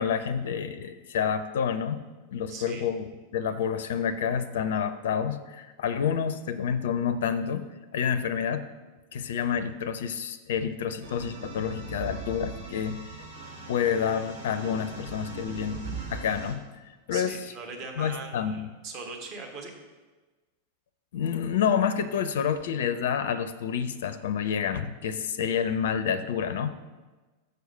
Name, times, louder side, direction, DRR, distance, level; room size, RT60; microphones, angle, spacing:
voice 1, 0.0-2.0 2.3-3.0 3.3-7.6 7.9-8.6 9.1-13.0 13.7-15.8 16.1-16.6 17.1-17.4 18.0-18.7 21.1-26.8, left 7 dB, 60° left, 13 dB, 0.4 m, -28 dB
voice 2, 2.5-2.8 17.1-19.7, right 4 dB, 40° right, 2 dB, 1.4 m, -40 dB
sound 1, 11.0-16.5, right 3 dB, 65° right, 1.5 m, -40 dB
6.6 x 6.3 x 5.5 m, 1.2 s
figure-of-eight pair, 90°, 0 cm